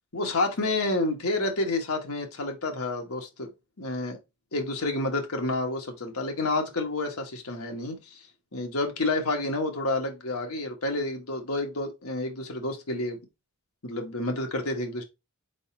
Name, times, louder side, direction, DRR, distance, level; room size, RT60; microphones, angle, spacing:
voice 1, 0.1-3.5 3.8-4.2 4.5-8.2 8.5-13.2 13.8-15.0, left 2 dB, 80° left, 1.4 m, -29 dB
4.9 x 4.0 x 2.7 m
head